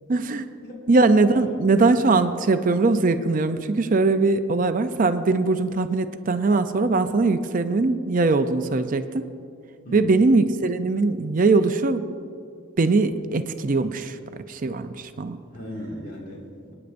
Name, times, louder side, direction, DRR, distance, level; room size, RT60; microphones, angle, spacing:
voice 1, 0.1-0.5 0.9-9.3 9.9-12.0 12.8-14.2 14.5-15.4, right 3 dB, 40° right, 9 dB, 0.5 m, -21 dB
voice 2, 1.3-1.6 9.8-10.2 15.5-16.7, left 1 dB, 45° left, -2 dB, 2.0 m, -37 dB
26.0 x 9.6 x 2.6 m, 2.4 s
head